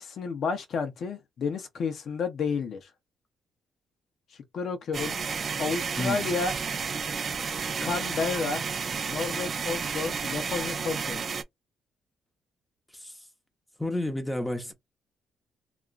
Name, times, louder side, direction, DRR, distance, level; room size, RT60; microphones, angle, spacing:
voice 1, 0.0-2.9 4.5-5.1 5.6-6.5 7.8-8.6 9.1-11.2, left 5 dB, 60° left, 0.7 m, -31 dB
sound 1, 4.9-11.4, right 5 dB, 45° right, 0.4 m, -31 dB
voice 2, 13.8-14.7, left 1 dB, 5° left, 0.8 m, -30 dB
2.8 x 2.4 x 2.4 m
cardioid pair, 90°, 0 cm